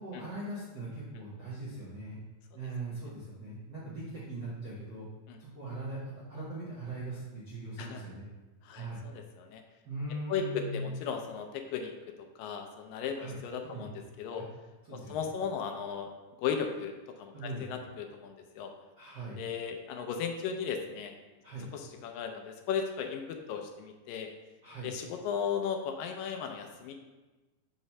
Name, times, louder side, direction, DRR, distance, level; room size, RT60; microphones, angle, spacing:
voice 1, 0.0-2.2 2.5-5.0 5.4-8.3 8.7-9.0 9.8-11.0 13.2-13.3 13.6-13.8 14.3-14.5 14.9-15.2 17.3-17.6 19.0-19.4 21.4-21.7 24.6-24.9, right 2 dB, 75° right, -9 dB, 0.9 m, -40 dB
voice 2, 8.6-9.6 10.3-11.9 12.2-14.4 14.9-16.1 16.4-18.7 19.4-21.1 21.7-24.3 24.8-26.9, left 7 dB, 80° left, 4 dB, 2.2 m, -36 dB
6.4 x 3.0 x 5.3 m, 1.2 s
omnidirectional pair, 4.1 m